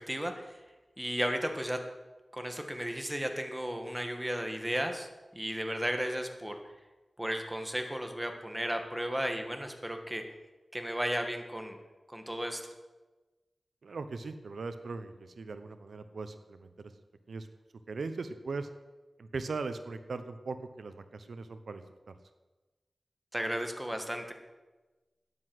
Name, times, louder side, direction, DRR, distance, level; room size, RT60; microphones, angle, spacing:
voice 1, 0.1-0.6 1.0-1.8 2.3-5.1 5.3-6.6 7.2-10.2 10.7-11.8 12.1-12.7 23.3-24.3, equal, 10° right, 4 dB, 1.7 m, -34 dB
voice 2, 13.8-16.9 17.3-17.5 17.9-18.7 19.2-22.1, right 4 dB, 80° right, 10 dB, 0.9 m, -39 dB
13.0 x 9.9 x 7.8 m, 1.2 s
wide cardioid pair, 95°, 0 cm